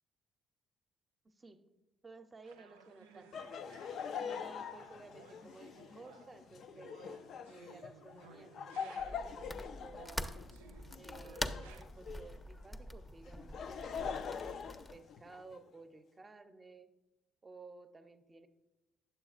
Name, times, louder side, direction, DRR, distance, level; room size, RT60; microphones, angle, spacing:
voice 1, 1.2-1.6 2.0-3.6 4.2-10.4 10.9-16.9 17.4-18.5, right 3 dB, 30° right, 8 dB, 0.7 m, -55 dB
sound 1, 2.4-9.4 9.9-11.8, right 6 dB, 90° right, 0.4 m, -59 dB
Laughter, 3.3-12.4 13.2-15.6, left 7 dB, 60° left, 0.3 m, -44 dB
sound 2, 9.0-15.0, left 1 dB, 15° left, 0.6 m, -44 dB
9.0 x 7.0 x 2.4 m, 1.0 s
hypercardioid pair, 50°, 0 cm